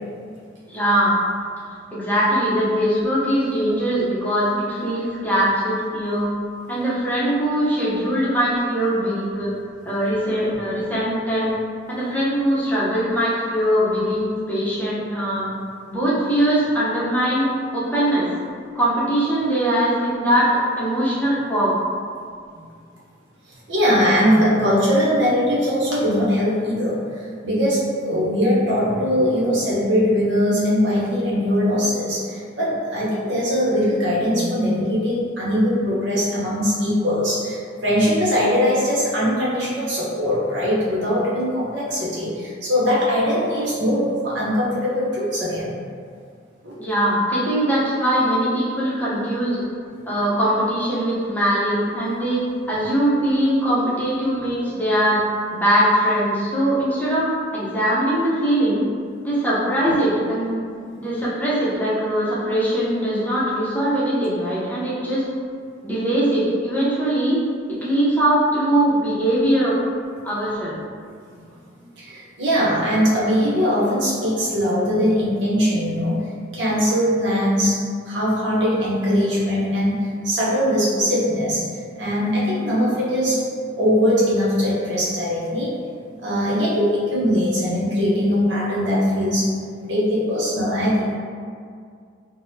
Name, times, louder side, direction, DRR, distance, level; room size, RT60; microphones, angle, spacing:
voice 1, 0.7-1.1 1.9-6.3 6.7-9.5 9.8-11.6 11.9-15.4 15.9-18.3 18.7-20.5 20.8-21.7 46.8-49.6 50.1-52.4 52.7-55.2 55.6-58.8 59.2-60.6 61.0-65.2 65.8-67.4 67.7-69.8 70.2-70.8, right 1 dB, 10° left, -9 dB, 0.7 m, -21 dB
voice 2, 23.7-45.7 46.6-46.8 59.9-60.0 72.0-76.2 76.5-81.6 82.0-83.5 83.7-85.7 86.2-89.5 89.8-91.2, equal, 65° right, -7 dB, 0.9 m, -21 dB
3.9 x 2.1 x 2.7 m, 2.2 s
head